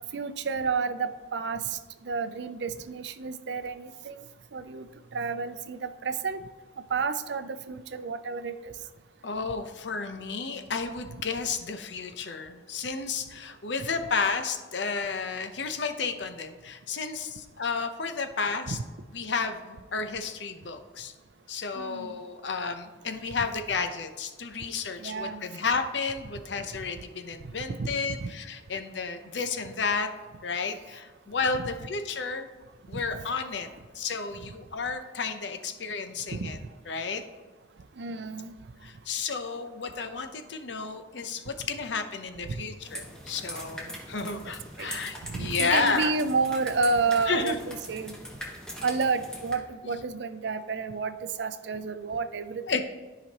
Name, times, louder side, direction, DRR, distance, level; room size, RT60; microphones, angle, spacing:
voice 1, 0.1-4.2 4.5-4.9 5.1-6.4 6.9-8.7 11.1-11.2 18.7-18.8 21.8-22.1 25.0-25.4 27.7-27.9 28.2-28.3 32.9-33.0 36.3-36.5 38.0-38.5 42.5-42.6 44.2-44.4 44.8-44.9 45.3-48.1 48.8-52.8, right 4 dB, 70° right, 11 dB, 0.5 m, -30 dB
voice 2, 9.2-18.8 19.1-21.1 21.5-30.1 30.4-32.5 32.9-33.7 33.9-36.6 36.9-37.2 38.8-46.1 47.3-47.7 52.7-52.8, left 5 dB, 75° left, 7 dB, 0.7 m, -32 dB
sound 1, 42.8-49.5, equal, 5° left, 1.3 m, -41 dB
13.0 x 5.0 x 2.9 m, 1.3 s
head